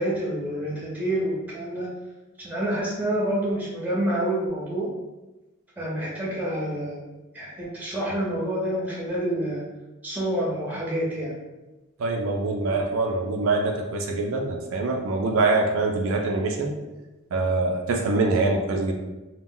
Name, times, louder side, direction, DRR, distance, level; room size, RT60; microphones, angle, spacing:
voice 1, 0.0-1.9 2.4-4.9 5.8-7.0 7.3-9.6 10.0-11.3, right 1 dB, 10° right, -5 dB, 0.6 m, -28 dB
voice 2, 12.0-16.7 17.3-18.9, right 3 dB, 75° right, 2 dB, 0.4 m, -24 dB
2.2 x 2.0 x 3.7 m, 1.1 s
head